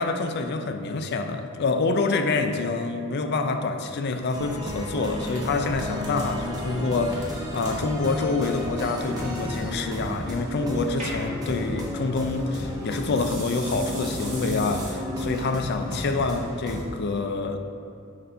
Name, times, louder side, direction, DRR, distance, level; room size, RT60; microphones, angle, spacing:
voice 1, 0.0-17.6, left 3 dB, 50° left, 6 dB, 0.4 m, -27 dB
sound 1, 4.3-16.8, left 1 dB, 20° right, 0.8 m, -33 dB
sound 2, 5.1-14.9, right 1 dB, 35° right, 1.4 m, -42 dB
6.6 x 2.6 x 5.5 m, 2.4 s
head